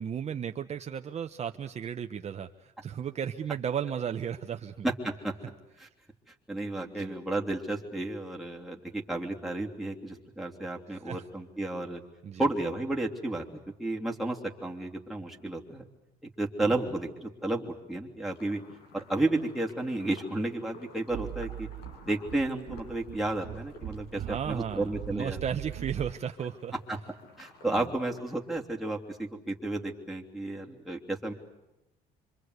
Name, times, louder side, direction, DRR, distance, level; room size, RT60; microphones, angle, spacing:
voice 1, 0.0-4.9 6.8-7.1 10.9-11.2 12.2-12.5 16.6-16.7 24.1-26.7 27.6-27.9, right 8 dB, 40° right, 6 dB, 1.0 m, -35 dB
voice 2, 4.8-5.3 5.8-5.9 6.5-12.0 12.4-13.4 13.8-15.8 16.4-18.6 18.9-21.7 22.0-25.4 26.9-27.0 27.4-31.3, right 2 dB, ahead, -1 dB, 3.2 m, -32 dB
sound 1, 18.3-28.4, left 2 dB, 75° left, 7.6 m, -54 dB
sound 2, 21.1-26.1, right 12 dB, 75° right, 2.1 m, -41 dB
26.5 x 25.0 x 8.2 m, 0.95 s
cardioid pair, 110°, 17 cm